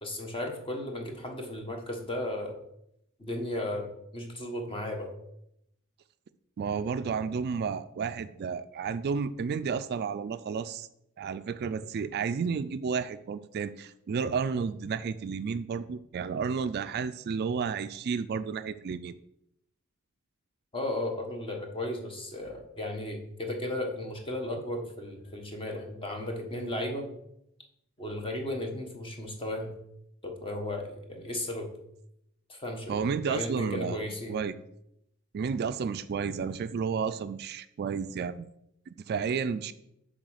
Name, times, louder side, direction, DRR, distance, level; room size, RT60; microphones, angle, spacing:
voice 1, 0.0-2.5 3.2-5.1 20.7-27.1 28.0-29.7 30.2-31.7 32.5-33.0 33.2-34.4, left 1 dB, 25° left, 3 dB, 1.2 m, -35 dB
voice 2, 6.6-10.9 11.2-19.1 32.9-34.0 34.3-34.5 35.3-38.5 38.9-39.7, right 6 dB, 50° right, 12 dB, 0.3 m, -32 dB
7.8 x 3.7 x 6.4 m, 0.78 s
head